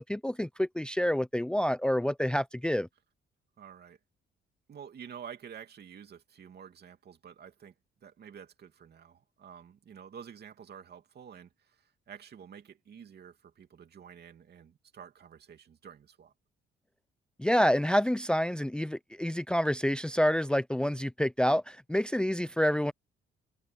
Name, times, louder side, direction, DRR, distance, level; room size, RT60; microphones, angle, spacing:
voice 1, 0.0-2.9 17.4-22.9, equal, 5° left, 0.6 m, -28 dB
voice 2, 3.6-4.0 4.7-7.7 8.0-16.3, right 8 dB, 55° right, 2.8 m, -49 dB
cardioid pair, 90°, 20 cm